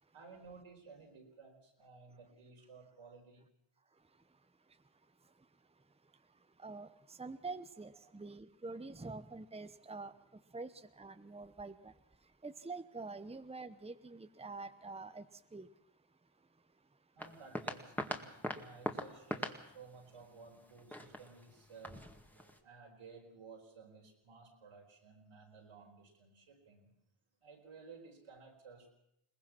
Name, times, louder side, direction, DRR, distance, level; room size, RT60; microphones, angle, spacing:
voice 1, 0.1-3.4 8.0-8.1 17.2-27.0 27.4-28.9, right 4 dB, 85° right, 4.6 m, -56 dB
voice 2, 3.9-17.2, right 3 dB, 10° right, 1.0 m, -48 dB
sound 1, 17.2-22.6, equal, 5° left, 2.1 m, -43 dB
22.5 x 19.5 x 6.0 m
cardioid pair, 60°, 50 cm